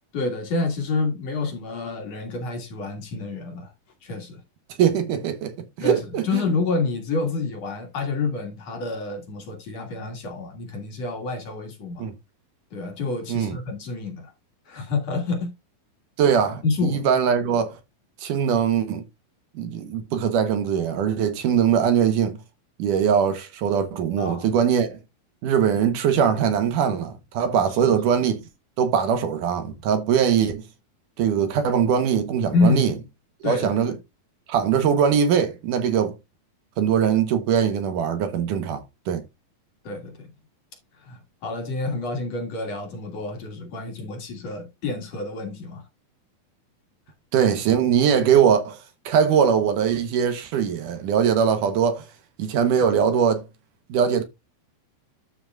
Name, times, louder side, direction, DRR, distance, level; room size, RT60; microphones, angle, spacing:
voice 1, 0.1-3.7 4.0-4.4 5.8-12.1 12.7-14.3 14.7-15.5 16.6-17.0 24.2-24.5 27.8-28.0 32.5-33.0 33.4-34.0 39.8-40.3 41.0-45.9, left 3 dB, 50° left, 2.7 m, -28 dB
voice 2, 4.8-6.4 12.0-12.1 13.3-13.6 16.2-17.8 18.2-19.0 19.6-22.4 22.8-25.0 25.4-28.4 28.8-30.6 31.2-32.9 33.4-33.9 34.5-36.2 36.8-39.2 47.3-48.8 49.1-52.1 52.4-53.5 53.9-54.2, right 8 dB, 75° right, 2.4 m, -21 dB
12.5 x 5.7 x 2.4 m
omnidirectional pair, 4.1 m